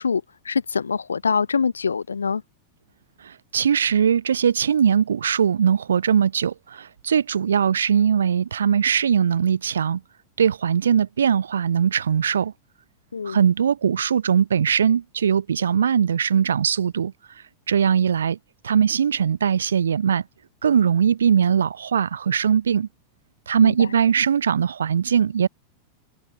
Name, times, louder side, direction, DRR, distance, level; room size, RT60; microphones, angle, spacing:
voice 1, 0.0-2.4 13.1-13.4 23.6-23.9, left 5 dB, 75° left, 5.3 m, -24 dB
voice 2, 3.2-10.0 10.4-12.5 13.3-17.1 17.7-18.4 18.6-20.2 20.6-22.9 23.5-25.5, right 7 dB, 70° right, 3.5 m, -20 dB
open air
figure-of-eight pair, 90°, 0 cm